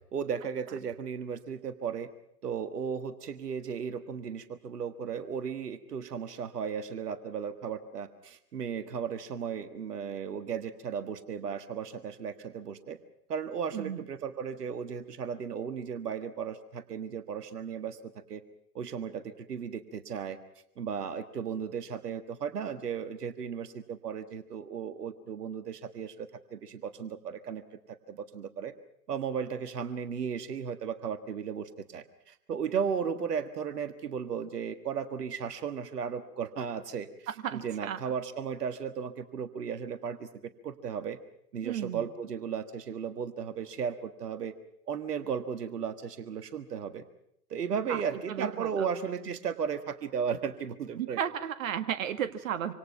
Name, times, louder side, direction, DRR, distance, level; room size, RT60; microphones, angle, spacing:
voice 1, 0.1-2.1 2.4-13.0 13.3-18.0 18.3-18.4 18.8-20.4 20.8-27.6 28.1-28.7 29.1-37.1 37.5-41.2 41.5-44.5 44.9-47.0 47.5-51.2, right 7 dB, 70° right, 10 dB, 1.7 m, -35 dB
voice 2, 37.4-38.0 41.6-42.0 47.9-48.0 48.3-48.9 51.0-52.7, right 9 dB, 55° right, 10 dB, 1.8 m, -33 dB
26.5 x 26.5 x 5.8 m, 0.75 s
figure-of-eight pair, 120°, 49 cm